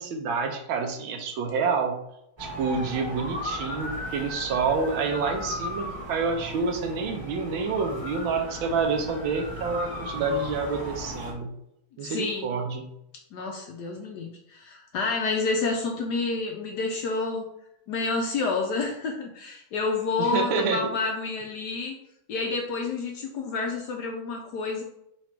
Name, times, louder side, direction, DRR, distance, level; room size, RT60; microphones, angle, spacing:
voice 1, 0.0-2.0 2.4-11.5 12.0-12.8 20.2-20.8, right 4 dB, 80° right, 4 dB, 1.4 m, -28 dB
sound 1, 2.4-11.3, left 1 dB, 20° right, 0.8 m, -36 dB
voice 2, 12.0-12.5 13.3-17.5 17.9-22.0 22.3-24.8, left 3 dB, 70° left, 2 dB, 1.0 m, -29 dB
3.9 x 3.1 x 4.4 m, 0.77 s
omnidirectional pair, 2.2 m